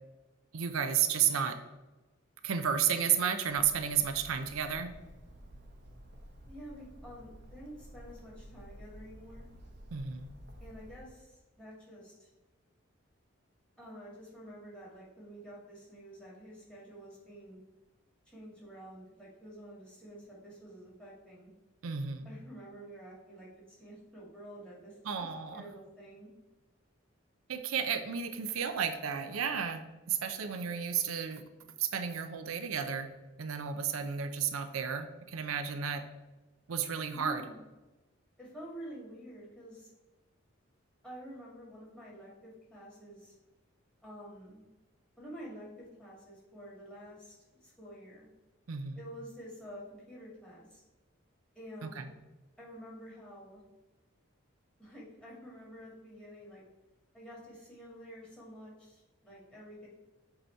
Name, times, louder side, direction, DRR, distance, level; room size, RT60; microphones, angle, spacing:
voice 1, 0.5-1.6 2.4-4.9 9.9-10.3 21.8-22.3 25.1-25.6 27.5-31.4 31.8-33.1 33.4-36.0 36.7-37.4 48.7-49.0 51.8-52.1, right 8 dB, 90° right, 8 dB, 0.5 m, -32 dB
Bird, 3.4-11.1, equal, 55° right, 0.9 m, -52 dB
voice 2, 6.5-9.4 10.6-12.3 13.8-17.6 18.3-21.5 22.2-25.0 25.5-26.3 37.1-37.6 38.4-39.9 41.0-43.3 44.0-44.6 45.2-48.3 48.9-50.8 51.5-52.1 52.6-53.6 54.8-56.6 57.1-59.9, equal, 5° left, -7 dB, 1.9 m, -49 dB
7.7 x 2.9 x 4.4 m, 1.1 s
head